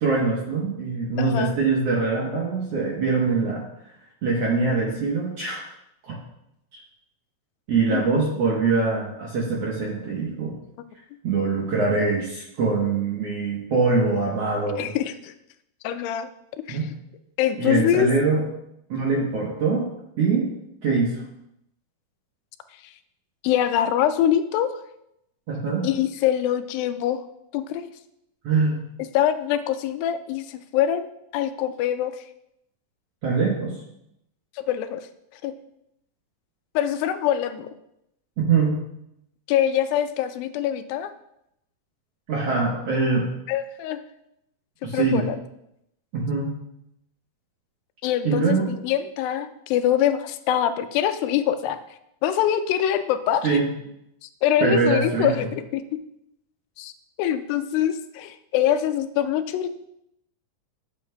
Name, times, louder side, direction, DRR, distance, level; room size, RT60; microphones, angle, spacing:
voice 1, 0.0-3.7 4.2-5.6 6.0-6.1 7.7-10.5 11.2-14.9 16.7-16.9 17.6-18.4 18.9-19.9 20.2-20.5 20.8-21.2 25.5-25.8 28.4-28.8 33.2-33.8 38.4-38.8 42.3-43.3 44.8-45.2 46.1-46.6 48.2-48.7 53.4-53.7 54.6-55.4, right 4 dB, 65° right, -3 dB, 1.6 m, -23 dB
voice 2, 1.2-1.6 7.9-8.2 14.8-15.3 15.8-16.3 16.7-16.8 17.4-18.1 23.4-24.8 25.8-27.2 27.5-27.9 29.1-31.1 31.3-32.2 34.6-35.0 35.4-35.5 36.8-37.7 39.5-41.1 43.5-44.0 44.8-45.4 48.0-51.8 52.2-53.6 54.2-55.8 56.8-56.9 57.2-59.7, left 10 dB, 85° left, 10 dB, 2.3 m, -24 dB
10.5 x 7.1 x 2.2 m, 0.81 s
omnidirectional pair, 4.1 m